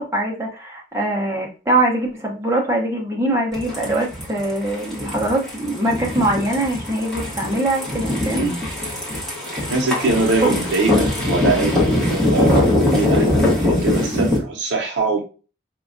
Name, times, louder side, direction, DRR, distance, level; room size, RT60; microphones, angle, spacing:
voice 1, 0.0-8.5 10.4-10.5 14.1-14.4, right 1 dB, 15° right, -1 dB, 0.6 m, -22 dB
sound 1, 3.5-14.4, left 1 dB, ahead, 0.9 m, -22 dB
voice 2, 9.7-15.2, right 3 dB, 75° right, -2 dB, 0.6 m, -23 dB
4.6 x 2.2 x 2.4 m, 0.35 s
head